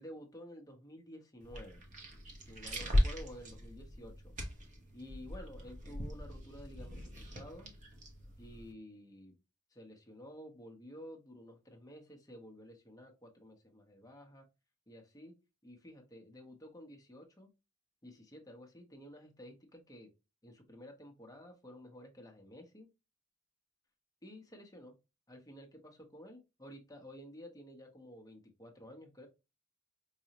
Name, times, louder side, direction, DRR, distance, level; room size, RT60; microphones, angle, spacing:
voice 1, 0.0-1.9 2.5-4.3 4.9-7.7 8.4-9.3 9.7-14.5 14.9-15.3 15.6-17.5 18.0-20.1 20.4-22.9 24.2-24.9 25.3-29.3, equal, 15° left, 2 dB, 0.7 m, -52 dB
sound 1, 1.4-8.7, equal, 35° right, 0.8 m, -38 dB
4.8 x 2.0 x 2.7 m, 0.27 s
head